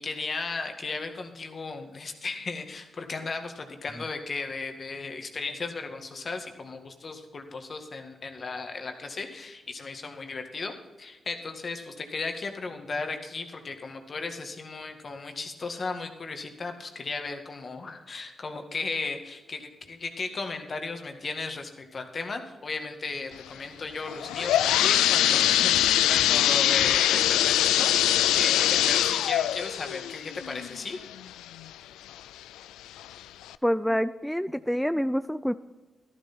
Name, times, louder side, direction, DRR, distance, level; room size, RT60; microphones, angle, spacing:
voice 1, 0.0-31.0, left 4 dB, 50° left, 5 dB, 1.9 m, -35 dB
sound 1, 24.1-31.7 32.2-32.3 33.0-33.1 33.5-33.6, left 12 dB, 85° left, 0.3 m, -23 dB
voice 2, 33.6-35.6, equal, ahead, 12 dB, 0.4 m, -27 dB
12.5 x 12.0 x 4.4 m, 1.2 s
supercardioid pair, 40°, 0 cm